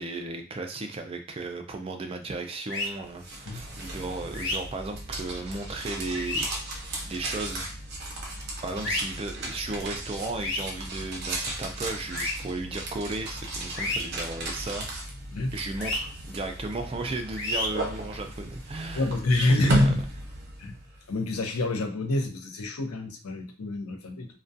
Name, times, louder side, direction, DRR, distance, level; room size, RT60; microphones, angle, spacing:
voice 1, 0.0-6.5 7.1-7.7 8.6-14.9 15.5-19.1 19.5-19.9, right 3 dB, 25° right, 5 dB, 0.3 m, -35 dB
sound 1, 2.7-2.9 4.3-4.6 6.1-6.4 8.8-9.0 10.4-10.7 12.1-12.3 13.8-14.0 15.8-16.0 17.4-17.7, left 2 dB, 55° left, 0.8 m, -29 dB
sound 2, 3.0-21.0, right 1 dB, 50° right, 0.8 m, -33 dB
voice 2, 18.9-20.0 20.6-20.7 21.1-24.3, left 2 dB, 90° left, 4 dB, 0.6 m, -27 dB
2.2 x 2.2 x 2.6 m, 0.42 s
head